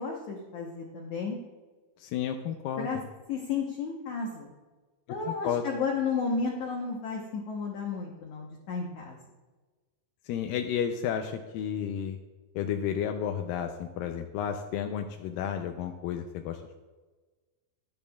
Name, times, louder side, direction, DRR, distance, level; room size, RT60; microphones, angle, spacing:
voice 1, 0.0-1.4 2.8-3.0 3.3-4.5 5.1-9.2, left 5 dB, 70° left, -1 dB, 1.9 m, -32 dB
voice 2, 2.0-2.9 5.3-5.6 10.3-12.2 12.6-16.8, left 9 dB, 85° left, 5 dB, 2.0 m, -32 dB
12.0 x 10.5 x 2.3 m, 1.3 s
omnidirectional pair, 4.5 m